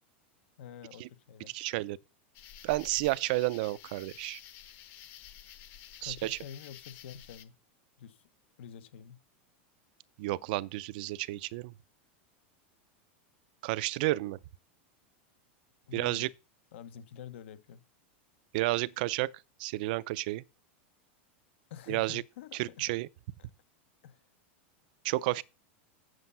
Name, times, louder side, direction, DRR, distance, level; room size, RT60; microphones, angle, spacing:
voice 1, 0.6-1.5 6.0-7.5 8.0-8.2 8.6-9.2 15.9-16.3 16.7-17.8 21.7-22.8 24.0-24.2, left 9 dB, 75° left, 0.9 m, -47 dB
voice 2, 1.5-2.0 2.6-4.4 6.0-6.4 10.2-11.7 13.6-14.4 15.9-16.3 18.5-19.3 19.6-20.4 21.9-22.2 22.6-23.1 25.0-25.4, right 19 dB, 50° right, 0.4 m, -31 dB
sound 1, 2.3-7.4, left 10 dB, 30° left, 0.8 m, -51 dB
8.2 x 7.8 x 5.5 m
supercardioid pair, 170°, 6 cm